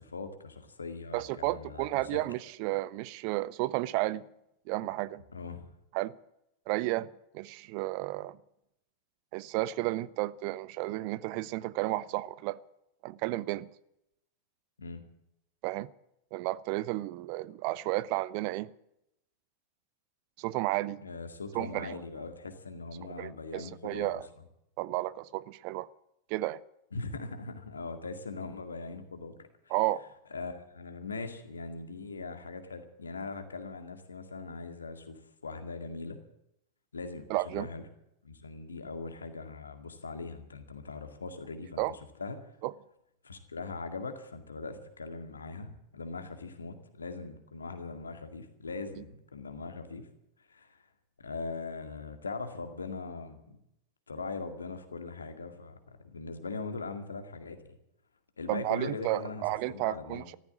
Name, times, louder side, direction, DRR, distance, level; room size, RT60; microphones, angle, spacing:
voice 1, 0.0-2.2 5.3-5.7 14.8-15.0 21.0-24.2 26.9-29.3 29.7-29.8 30.3-35.2 35.4-36.2 36.9-37.8 38.2-42.4 43.2-50.1 50.5-50.8 51.2-53.6 54.1-57.6 58.4-60.2, left 4 dB, 75° left, 2.1 m, -40 dB
voice 2, 1.1-4.2 4.7-5.2 5.9-6.1 6.7-7.1 7.3-8.4 9.3-12.6 13.0-13.7 15.6-15.9 16.3-18.7 20.4-21.0 21.5-22.0 23.2-24.3 24.8-25.9 26.3-26.6 29.7-30.0 37.3-37.7 41.8-41.9 42.6-42.7 58.5-60.4, right 18 dB, 45° right, 0.6 m, -32 dB
14.5 x 13.5 x 7.3 m
figure-of-eight pair, 90°, 0 cm